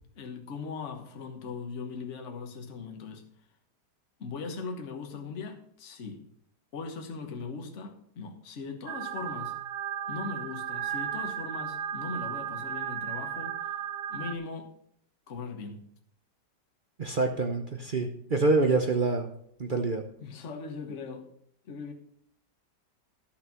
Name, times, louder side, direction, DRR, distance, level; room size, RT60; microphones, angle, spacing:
voice 1, 0.2-3.2 4.2-6.2 6.7-9.5 10.1-13.8 14.1-14.7 15.3-15.8 20.2-21.3 21.6-21.9, left 4 dB, 45° left, 1.5 m, -39 dB
sound 1, 8.9-14.4, right 9 dB, 75° right, 1.3 m, -35 dB
voice 2, 17.0-19.3 19.6-20.0, right 3 dB, 45° right, 0.7 m, -26 dB
11.5 x 6.6 x 6.0 m
omnidirectional pair, 1.9 m